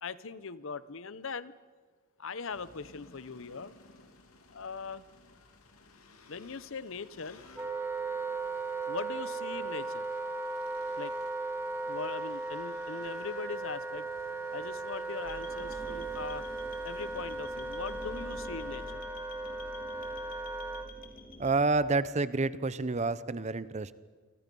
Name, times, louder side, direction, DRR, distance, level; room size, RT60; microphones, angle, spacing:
voice 1, 0.0-1.5 2.2-3.7 4.5-5.0 6.3-7.4 8.9-10.1 11.0-11.1 11.9-14.1 14.5-16.5 16.8-19.0, left 4 dB, 65° left, 16 dB, 0.8 m, -40 dB
sound 1, 2.5-18.9, left 3 dB, 85° left, 2.7 m, -58 dB
Wind instrument woodwind instrument, 7.6-20.9, right 3 dB, 10° right, 1.4 m, -37 dB
sound 2, 15.2-21.5, left 1 dB, 40° left, 2.8 m, -47 dB
voice 2, 21.4-23.9, right 3 dB, 30° right, 16 dB, 0.7 m, -29 dB
29.5 x 24.0 x 5.4 m, 1.5 s
head